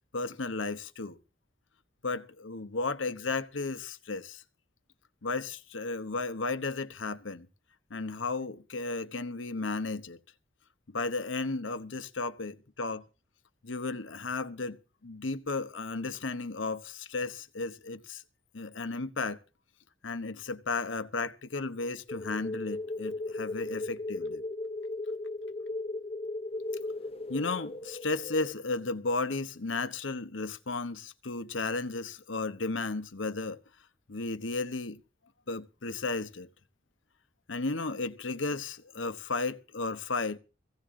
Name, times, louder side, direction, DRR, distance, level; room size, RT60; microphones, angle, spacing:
voice 1, 0.1-1.2 2.0-4.4 5.2-7.5 7.9-10.2 10.9-13.0 13.6-18.2 18.5-19.4 20.0-24.4 27.3-33.6 34.1-35.0 35.5-36.5 37.5-40.4, left 3 dB, 80° left, 1.1 m, -34 dB
sound 1, 22.1-28.5, left 2 dB, 30° left, 0.6 m, -36 dB
16.5 x 15.5 x 3.7 m
head